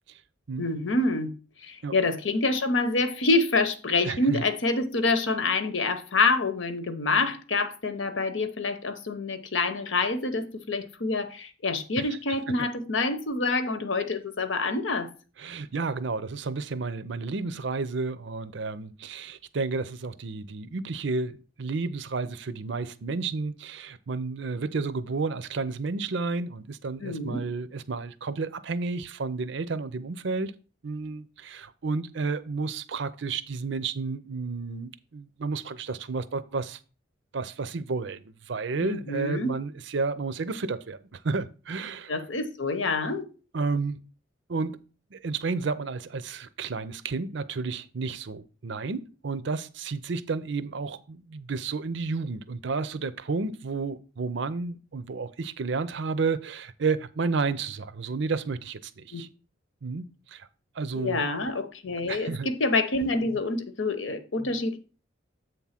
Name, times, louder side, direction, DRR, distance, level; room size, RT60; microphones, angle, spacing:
voice 1, 0.6-1.3 1.6-15.1 27.0-27.5 38.8-39.5 42.1-43.3 59.1-59.2 61.0-64.8, left 3 dB, 75° left, 1.0 m, -27 dB
voice 2, 4.0-4.4 12.0-12.1 12.6-12.7 15.4-30.5 30.8-36.8 37.3-42.1 43.5-44.0 44.5-44.8 45.1-59.3 59.8-60.5 60.8-61.2 62.1-62.5, right 4 dB, 65° right, 0.6 m, -31 dB
7.8 x 3.6 x 5.8 m
head